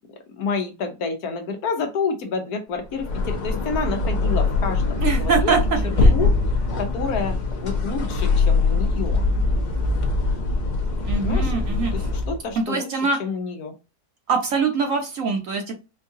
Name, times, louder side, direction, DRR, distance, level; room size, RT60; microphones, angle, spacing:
voice 1, 0.3-5.5 5.8-6.3 6.8-9.3 11.2-11.5 11.9-12.9 13.2-13.7, left 4 dB, 70° left, 5 dB, 1.1 m, -29 dB
sound 1, 2.9-12.4, left 3 dB, 85° left, 0.4 m, -22 dB
voice 2, 5.0-5.6 6.0-6.1 11.0-11.9 12.5-13.2 14.3-15.7, right 4 dB, 55° right, 3 dB, 1.2 m, -23 dB
4.5 x 2.3 x 2.7 m, 0.28 s
omnidirectional pair, 1.8 m